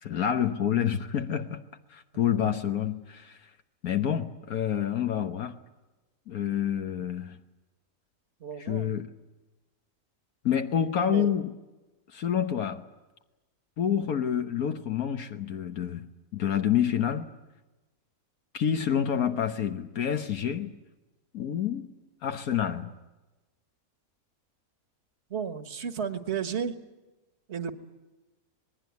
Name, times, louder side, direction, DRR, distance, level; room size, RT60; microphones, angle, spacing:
voice 1, 0.0-1.6 1.9-3.4 3.8-5.6 6.3-7.4 8.6-9.1 10.4-11.5 12.1-12.8 13.8-17.3 18.5-20.7 21.3-21.9 22.2-22.9, left 9 dB, 75° left, 1.5 m, -28 dB
voice 2, 8.4-8.9 11.1-11.3 25.3-26.8 27.5-27.7, right 7 dB, 50° right, 1.7 m, -33 dB
27.0 x 20.5 x 9.4 m
omnidirectional pair, 1.5 m